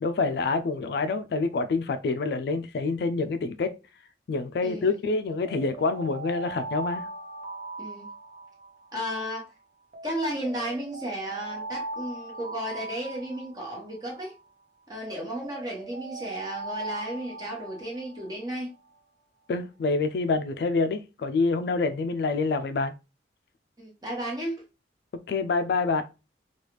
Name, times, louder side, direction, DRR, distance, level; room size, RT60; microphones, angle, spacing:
voice 1, 0.0-3.7 4.3-7.1 19.5-22.9 25.3-26.0, left 3 dB, 60° left, 0.3 m, -27 dB
Alarm, 5.2-9.4 9.9-14.4 14.9-18.7, right 2 dB, 45° right, 0.6 m, -40 dB
voice 2, 8.9-9.5 10.0-14.3 14.9-18.7 23.8-24.6, equal, 20° right, 1.2 m, -34 dB
3.2 x 2.3 x 2.9 m
head